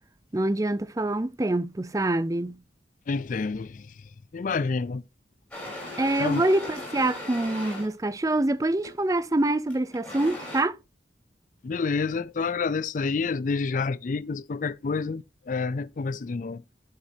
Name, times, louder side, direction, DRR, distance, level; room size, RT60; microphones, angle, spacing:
voice 1, 0.3-2.6 6.0-10.8, right 2 dB, 20° right, 0.5 m, -25 dB
voice 2, 3.1-3.9 4.3-5.0 6.2-6.4 11.6-16.7, left 4 dB, 45° left, 0.4 m, -28 dB
Coffee Beans in Grinder + Grinding, 5.5-7.9 8.8-9.1 9.7-10.6, left 1 dB, 5° left, 6.1 m, -38 dB
12.0 x 7.4 x 2.7 m
head